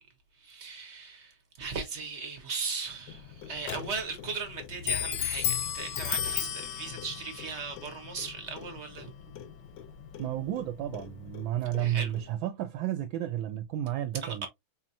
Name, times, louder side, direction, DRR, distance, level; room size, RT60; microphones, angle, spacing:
voice 1, 0.3-9.1 11.8-12.1 14.2-14.5, right 4 dB, 45° right, 0.9 m, -38 dB
Clock, 3.1-12.4, left 10 dB, 70° left, 1.2 m, -36 dB
voice 2, 10.2-14.5, right 12 dB, 80° right, 1.3 m, -32 dB
4.6 x 2.8 x 2.6 m
omnidirectional pair, 2.2 m